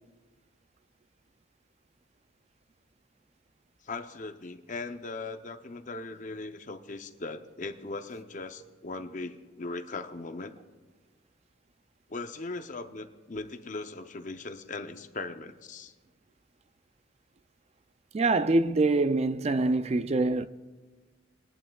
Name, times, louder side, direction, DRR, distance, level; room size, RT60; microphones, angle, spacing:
voice 1, 3.8-10.5 12.1-15.9, left 3 dB, 40° left, 0.6 m, -39 dB
voice 2, 18.1-20.5, right 2 dB, 30° right, 0.4 m, -25 dB
21.0 x 11.0 x 2.3 m
head